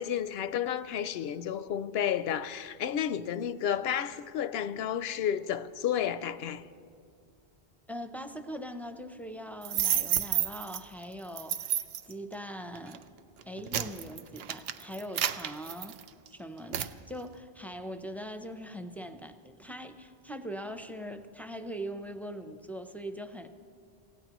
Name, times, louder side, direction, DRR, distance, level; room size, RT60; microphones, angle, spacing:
voice 1, 0.0-6.6, left 9 dB, 80° left, 0.8 m, -31 dB
voice 2, 7.9-13.0 13.4-16.0 16.3-23.5, equal, ahead, 0.5 m, -41 dB
sound 1, 9.6-10.8 11.4-12.1 12.8-13.0 13.4-16.3 16.7-16.9, right 10 dB, 75° right, 0.8 m, -30 dB
26.5 x 16.5 x 3.0 m
omnidirectional pair, 1.0 m